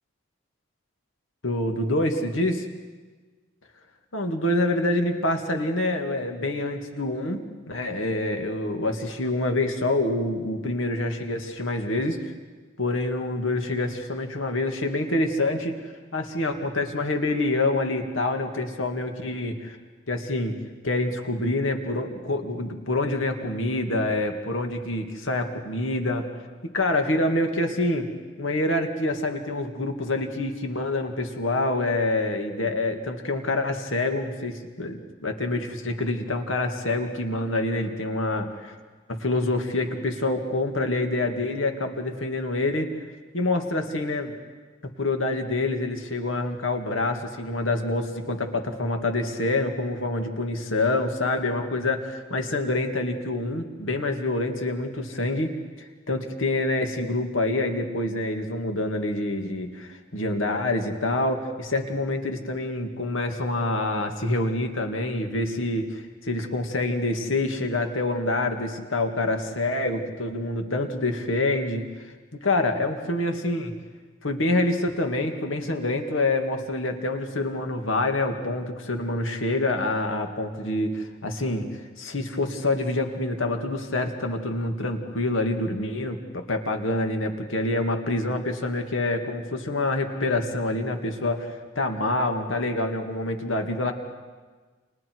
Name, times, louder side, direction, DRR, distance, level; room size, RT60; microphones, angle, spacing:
voice 1, 1.4-2.6 4.1-12.3 12.8-15.8 16.1-19.8 20.1-20.6 20.8-26.3 26.7-28.1 28.4-38.7 39.2-42.9 43.3-44.3 45.0-55.5 55.8-72.1 72.4-73.7 74.2-93.9, left 2 dB, 80° left, 4 dB, 2.3 m, -26 dB
30.0 x 27.5 x 4.7 m, 1.4 s
head